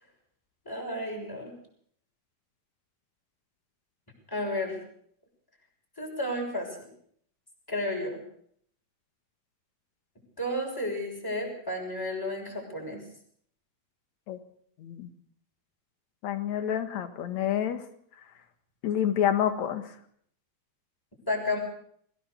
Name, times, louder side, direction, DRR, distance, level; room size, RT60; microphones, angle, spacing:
voice 1, 0.6-1.5 4.3-4.8 6.0-6.9 7.7-8.2 10.4-13.0 21.3-21.6, left 1 dB, 5° left, 1 dB, 6.3 m, -32 dB
voice 2, 16.2-17.8 18.8-19.9, left 10 dB, 60° left, 9 dB, 2.8 m, -28 dB
23.5 x 17.5 x 6.8 m, 0.64 s
omnidirectional pair, 3.7 m